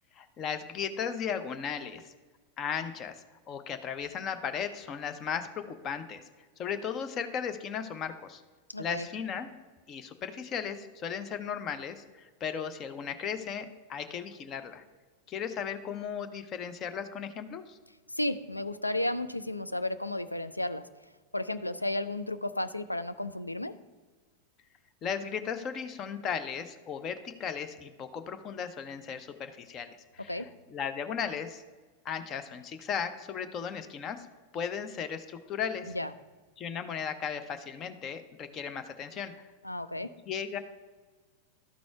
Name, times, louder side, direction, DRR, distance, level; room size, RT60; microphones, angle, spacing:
voice 1, 0.1-2.1 2.6-6.2 6.6-8.4 8.8-9.5 9.9-14.8 15.3-17.8 25.0-31.6 32.0-34.3 34.5-35.9 36.6-39.5 40.3-40.6, left 7 dB, 30° left, 9 dB, 0.6 m, -36 dB
voice 2, 8.7-9.1 18.1-20.8 21.3-23.7 30.3-30.5 35.9-36.1 39.6-40.1, left 1 dB, 85° left, 12 dB, 0.3 m, -33 dB
12.5 x 4.2 x 4.5 m, 1.4 s
figure-of-eight pair, 90°, 0 cm